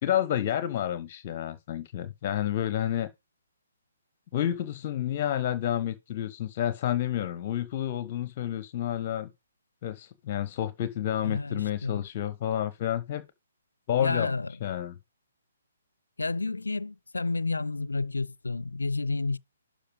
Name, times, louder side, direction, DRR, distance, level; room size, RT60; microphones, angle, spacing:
voice 1, 0.0-3.1 4.3-9.3 9.8-13.2 13.9-14.3 14.6-14.9, left 11 dB, 35° left, 0.8 m, -30 dB
voice 2, 11.2-12.0 14.0-14.5 16.2-19.4, left 3 dB, 75° left, 0.5 m, -30 dB
12.0 x 5.1 x 5.2 m
figure-of-eight pair, 130°, 0 cm